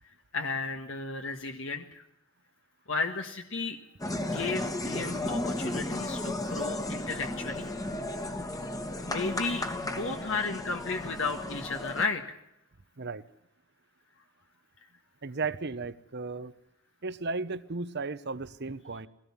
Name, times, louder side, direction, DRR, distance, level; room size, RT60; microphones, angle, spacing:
voice 1, 0.3-2.0 2.9-3.8 4.2-7.7 9.0-12.4, left 4 dB, 70° left, 4 dB, 1.6 m, -34 dB
sound 1, 4.0-12.1, left 1 dB, 15° left, 1.5 m, -34 dB
voice 2, 15.2-16.5 17.0-19.1, right 4 dB, 55° right, 15 dB, 1.0 m, -35 dB
22.0 x 18.0 x 7.2 m, 0.84 s
head